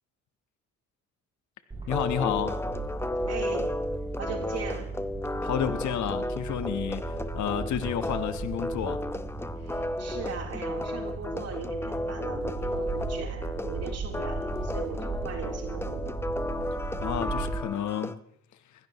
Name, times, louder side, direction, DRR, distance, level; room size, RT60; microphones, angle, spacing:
sound 1, 1.7-17.6, right 3 dB, 20° right, 6.0 m, -37 dB
voice 1, 1.9-2.6 5.4-9.0 17.0-18.2, left 9 dB, 70° left, 1.2 m, -31 dB
sound 2, 1.9-18.2, left 1 dB, 10° left, 0.7 m, -34 dB
voice 2, 3.1-3.7 4.2-4.9 9.6-16.2, right 5 dB, 55° right, 3.6 m, -39 dB
21.5 x 16.0 x 3.1 m
cardioid pair, 90°, 30 cm